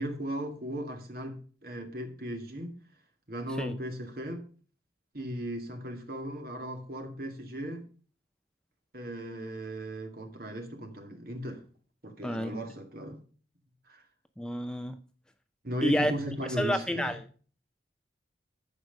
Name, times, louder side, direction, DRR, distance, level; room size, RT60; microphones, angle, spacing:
voice 1, 0.0-2.8 3.3-4.4 5.1-7.9 8.9-11.6 12.0-13.2 13.9-14.0 15.6-17.2, right 1 dB, 55° right, 2.2 m, -37 dB
voice 2, 12.2-12.6 14.4-15.0 15.8-16.1 16.6-17.2, equal, 5° left, 0.5 m, -29 dB
14.0 x 5.0 x 5.2 m
head